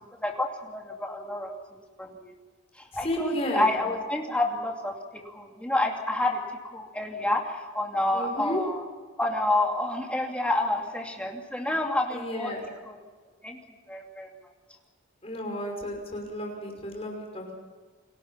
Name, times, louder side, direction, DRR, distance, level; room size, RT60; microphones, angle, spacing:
voice 1, 0.0-2.3 2.8-5.0 5.2-8.8 9.2-12.5 12.8-13.0 13.4-13.6 13.9-14.3, left 2 dB, 5° left, 1 dB, 2.5 m, -29 dB
voice 2, 2.9-3.7 8.1-8.6 12.1-12.6 15.2-17.5, equal, 30° left, 1 dB, 5.8 m, -32 dB
29.0 x 20.0 x 5.8 m, 1.4 s
head